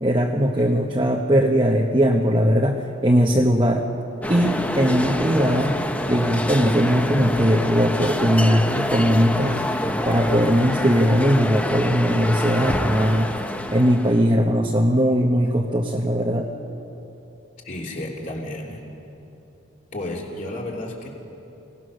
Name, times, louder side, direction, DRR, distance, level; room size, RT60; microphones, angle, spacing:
voice 1, 0.0-3.9 4.3-5.8 6.1-9.6 10.0-13.3 13.7-16.5, equal, 25° right, 0 dB, 1.0 m, -19 dB
sound 1, 4.2-14.3, left 1 dB, 5° left, 0.7 m, -26 dB
voice 2, 17.6-18.8 19.9-21.1, left 1 dB, 40° left, -1 dB, 3.2 m, -32 dB
29.0 x 18.0 x 6.4 m, 2.9 s
head